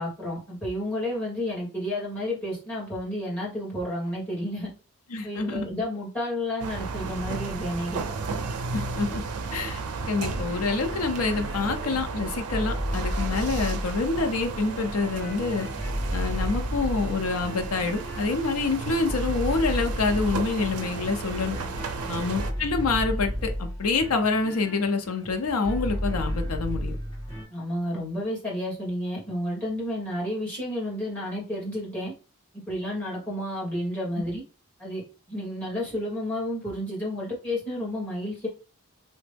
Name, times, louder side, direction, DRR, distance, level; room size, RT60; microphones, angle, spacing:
voice 1, 0.0-4.7 5.2-8.0 22.0-22.2 27.5-32.1 32.7-34.4 34.8-35.0 35.3-38.5, left 1 dB, 5° left, 1.4 m, -31 dB
voice 2, 5.1-5.7 8.7-9.2 9.5-9.8 10.1-15.7 16.1-21.6 22.1-27.0, left 4 dB, 80° left, 0.5 m, -27 dB
sound 1, 6.6-22.5, right 4 dB, 80° right, 0.4 m, -34 dB
sound 2, 10.3-27.4, equal, 30° left, 1.6 m, -33 dB
2.9 x 2.1 x 3.3 m
head